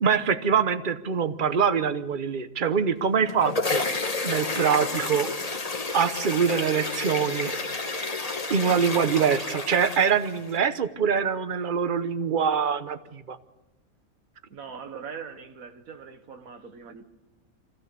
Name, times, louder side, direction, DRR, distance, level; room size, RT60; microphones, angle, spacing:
voice 1, 0.0-3.8 4.2-5.3 5.9-7.5 8.5-13.4, right 7 dB, 40° right, 1.0 m, -24 dB
sound 1, 3.1-10.6, left 3 dB, 30° left, 1.2 m, -30 dB
voice 2, 14.5-17.1, right 6 dB, 75° right, 1.7 m, -41 dB
24.5 x 16.0 x 6.8 m
omnidirectional pair, 1.5 m